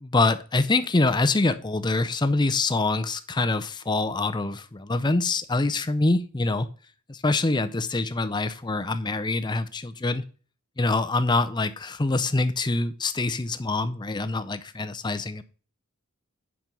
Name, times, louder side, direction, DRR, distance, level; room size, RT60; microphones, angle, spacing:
voice 1, 0.0-6.7 7.1-10.2 10.8-15.4, left 2 dB, 20° left, 11 dB, 0.5 m, -25 dB
8.9 x 6.1 x 5.3 m, 0.39 s
head